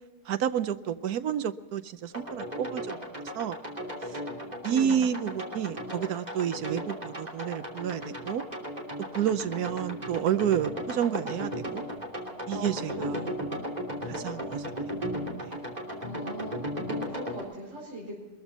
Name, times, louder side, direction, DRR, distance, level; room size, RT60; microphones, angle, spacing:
voice 1, 0.3-3.6 4.1-4.2 4.6-8.4 9.1-11.8 12.5-13.2 14.0-15.0 15.4-15.5, right 9 dB, 75° right, 12 dB, 1.3 m, -30 dB
sound 1, 2.1-17.4, equal, 25° right, 3.1 m, -36 dB
voice 2, 4.6-5.1 12.5-12.7 12.9-13.4 16.0-18.2, right 1 dB, 50° right, -5 dB, 4.9 m, -40 dB
22.0 x 14.0 x 4.2 m, 1.2 s
omnidirectional pair, 1.7 m